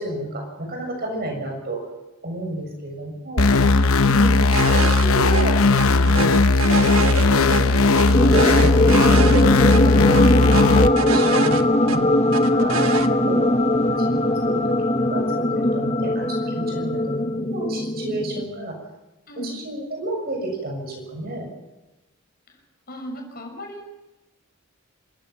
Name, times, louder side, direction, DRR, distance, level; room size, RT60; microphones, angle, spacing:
voice 1, 0.0-1.8 2.2-3.5 4.1-4.3 4.7-8.7 9.1-12.7 13.1-17.0 17.3-18.8 19.4-21.5, right 2 dB, 45° right, 2 dB, 7.0 m, -31 dB
sound 1, 3.4-10.9, left 3 dB, 75° left, 1.0 m, -17 dB
voice 2, 3.5-4.6 13.0-13.5 19.3-19.6 22.5-22.6 22.9-23.9, equal, 45° left, 2 dB, 6.1 m, -34 dB
sound 2, 4.5-5.1 5.3-5.4 5.8-7.6 8.0-9.4 9.7-9.8 10.1-12.0 12.3-13.1, right 5 dB, 80° right, 1.3 m, -27 dB
sound 3, 8.1-18.4, left 1 dB, 30° left, 1.2 m, -20 dB
27.5 x 16.0 x 7.5 m, 1.0 s
head